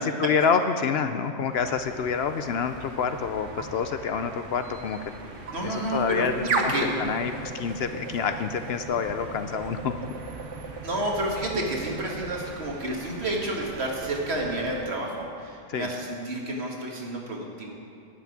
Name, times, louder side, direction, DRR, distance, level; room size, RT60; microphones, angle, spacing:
voice 1, 0.0-5.0 5.6-6.3 6.6-6.7 7.0-10.0 15.7-15.9, left 6 dB, 65° left, 8 dB, 0.8 m, -27 dB
sound 1, 1.5-14.9, right 3 dB, 85° right, 1.4 m, -37 dB
voice 2, 5.5-6.9 10.8-17.7, right 1 dB, 60° right, -1 dB, 2.0 m, -30 dB
12.0 x 5.9 x 9.1 m, 2.7 s
omnidirectional pair, 1.2 m